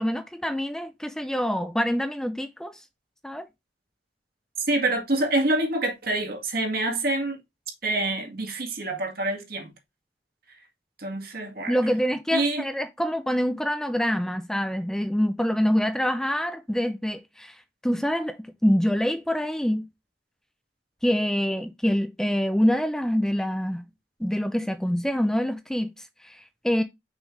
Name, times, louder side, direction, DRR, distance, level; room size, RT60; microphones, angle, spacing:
voice 1, 0.0-2.8 3.2-3.5 11.7-17.6 17.8-18.4 18.6-19.9 21.0-23.8 24.2-25.9 26.2-26.8, equal, 5° left, 0.4 m, -25 dB
voice 2, 4.7-7.4 7.8-9.7 11.0-11.8 12.3-12.6, right 2 dB, 60° right, 2.0 m, -26 dB
6.2 x 5.4 x 3.3 m
head